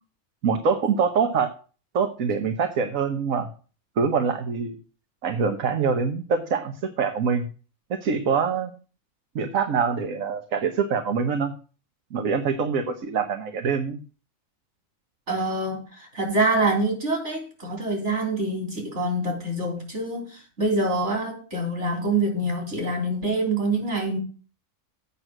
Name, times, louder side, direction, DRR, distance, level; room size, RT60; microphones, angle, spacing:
voice 1, 0.4-1.5 1.9-3.5 4.0-4.8 5.2-7.5 8.0-8.7 9.3-11.5 12.1-14.0, right 5 dB, 70° right, 1.5 m, -24 dB
voice 2, 15.3-24.2, right 2 dB, 55° right, 3.8 m, -26 dB
8.6 x 6.1 x 7.8 m
omnidirectional pair, 1.5 m